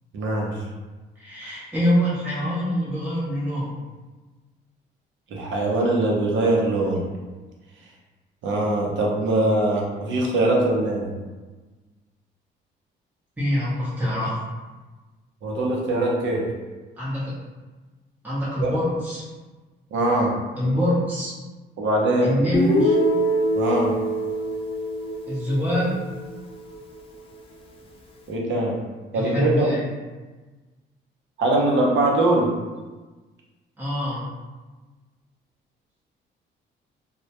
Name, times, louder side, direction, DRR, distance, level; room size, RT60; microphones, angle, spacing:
voice 1, 0.1-0.6 5.3-7.0 8.4-11.1 15.4-16.5 18.6-18.7 19.9-20.3 21.8-22.3 23.5-23.9 28.3-28.8 29.1-29.7 31.4-32.5, right 2 dB, 70° right, -1 dB, 0.6 m, -22 dB
voice 2, 1.2-3.7 13.4-14.4 17.0-17.3 18.2-19.2 20.5-21.3 22.2-23.0 25.3-26.1 29.1-29.8 33.8-34.2, equal, 10° right, -9 dB, 0.7 m, -25 dB
Guitar, 22.5-26.5, equal, 30° left, 0.4 m, -24 dB
2.1 x 2.1 x 2.7 m, 1.3 s
cardioid pair, 90°, 20 cm